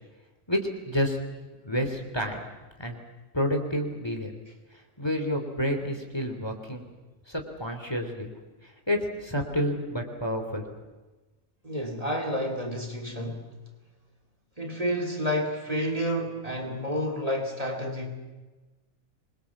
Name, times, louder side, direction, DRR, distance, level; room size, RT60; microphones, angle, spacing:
voice 1, 0.5-1.2 1.6-2.5 2.8-3.0 3.3-4.3 4.7-6.8 7.3-8.3 8.6-10.6, equal, 20° left, 3.1 m, -29 dB
voice 2, 11.6-13.5 14.6-18.2, equal, 25° right, 2.8 m, -30 dB
26.5 x 22.0 x 7.3 m
omnidirectional pair, 1.4 m